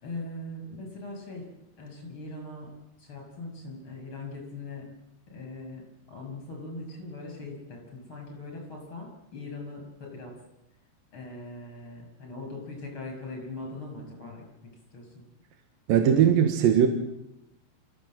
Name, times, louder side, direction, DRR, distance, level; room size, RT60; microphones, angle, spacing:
voice 1, 0.0-1.5 1.8-2.7 3.0-4.9 5.3-10.3 11.1-15.2, left 2 dB, 30° left, 1 dB, 7.3 m, -41 dB
voice 2, 15.9-16.9, right 9 dB, 65° right, 5 dB, 2.9 m, -20 dB
28.0 x 15.5 x 7.6 m, 0.86 s
omnidirectional pair, 5.0 m